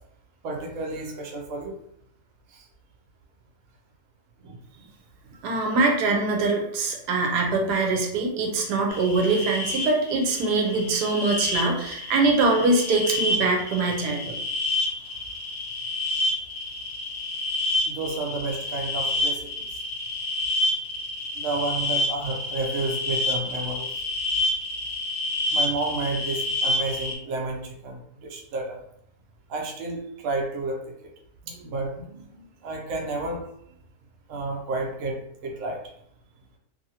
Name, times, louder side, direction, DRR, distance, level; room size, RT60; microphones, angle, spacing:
voice 1, 0.4-1.7 2.5-2.7 4.4-4.6 5.3-5.4 17.8-19.8 21.4-23.9 25.5-28.8 29.5-31.1 31.4-33.4 34.3-35.8, right 2 dB, 65° right, 0 dB, 0.9 m, -31 dB
voice 2, 5.4-14.4, right 3 dB, 80° right, 1 dB, 1.2 m, -23 dB
sound 1, 8.9-27.2, left 2 dB, 80° left, 0.5 m, -29 dB
2.7 x 2.6 x 2.7 m, 0.72 s
omnidirectional pair, 1.7 m